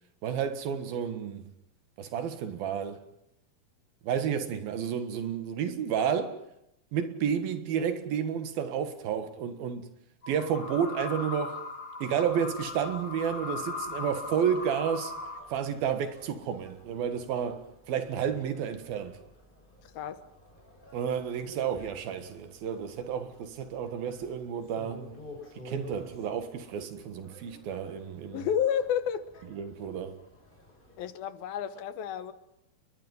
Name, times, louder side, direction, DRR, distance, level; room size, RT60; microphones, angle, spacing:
voice 1, 0.2-1.5 2.0-3.0 4.0-6.4 6.9-9.9 10.3-11.6 12.0-15.1 15.5-19.2 20.9-25.0 25.6-28.5 29.5-30.2, right 8 dB, 70° right, 3.5 m, -31 dB
sound 1, 10.2-15.4, left 3 dB, 30° left, 4.1 m, -38 dB
sound 2, 12.2-31.1, left 1 dB, 10° left, 6.3 m, -52 dB
voice 2, 28.3-29.3 31.0-32.3, left 9 dB, 75° left, 3.0 m, -30 dB
30.0 x 22.0 x 5.6 m
omnidirectional pair, 4.4 m